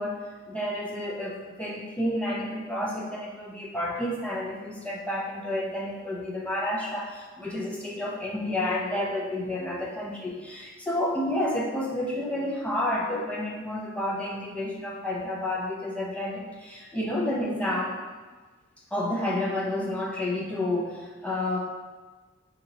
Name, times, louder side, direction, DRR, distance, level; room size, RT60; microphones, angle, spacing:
voice 1, 0.0-18.0 18.9-21.6, left 1 dB, 5° left, -4 dB, 0.6 m, -30 dB
3.9 x 2.9 x 4.0 m, 1.3 s
head